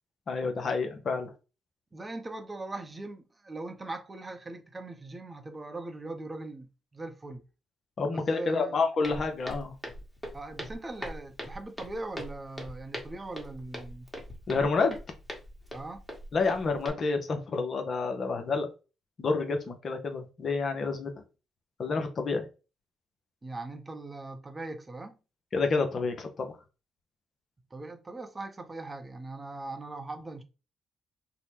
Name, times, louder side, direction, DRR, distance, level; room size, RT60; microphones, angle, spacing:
voice 1, 0.3-1.3 8.0-9.7 14.5-14.9 16.3-18.7 19.2-21.1 21.8-22.4 25.5-26.5, left 4 dB, 55° left, 0.6 m, -29 dB
voice 2, 1.9-7.4 8.1-8.8 10.3-14.1 15.7-16.0 23.4-25.2 27.7-30.4, right 2 dB, 25° right, 0.6 m, -40 dB
Walk footsteps, 9.0-16.9, equal, 15° left, 1.2 m, -42 dB
2.7 x 2.1 x 3.2 m
hypercardioid pair, 45°, 0 cm